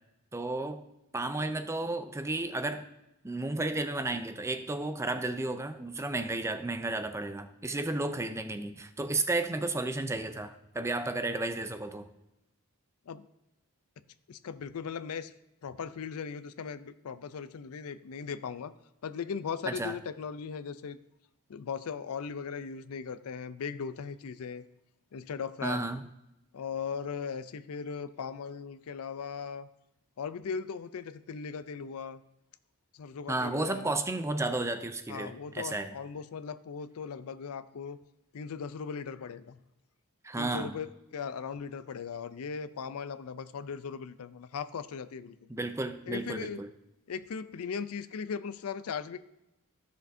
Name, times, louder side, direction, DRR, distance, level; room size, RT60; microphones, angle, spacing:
voice 1, 0.3-0.8 1.1-2.9 3.2-12.1 19.7-20.0 25.6-26.0 33.3-35.9 40.2-40.8 45.5-46.7, right 2 dB, 10° right, 9 dB, 0.4 m, -33 dB
voice 2, 14.3-15.3 15.6-18.7 19.0-21.0 21.5-24.7 25.1-25.9 26.5-29.7 30.2-32.2 32.9-33.9 35.1-38.0 38.3-39.6 40.4-45.4 46.1-46.6 47.1-49.2, left 6 dB, 75° left, 14 dB, 0.4 m, -38 dB
14.5 x 6.4 x 2.7 m, 0.90 s
head